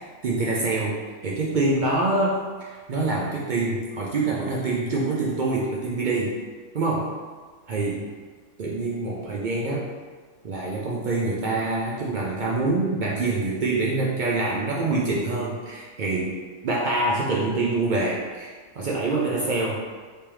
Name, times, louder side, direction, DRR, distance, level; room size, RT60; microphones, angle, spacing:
voice 1, 0.2-1.0 1.2-6.4 6.7-7.1 7.7-8.1 8.6-9.9 10.4-16.4 16.6-19.8, right 2 dB, 65° right, -4 dB, 0.4 m, -25 dB
3.4 x 3.3 x 3.0 m, 1.5 s
omnidirectional pair, 1.4 m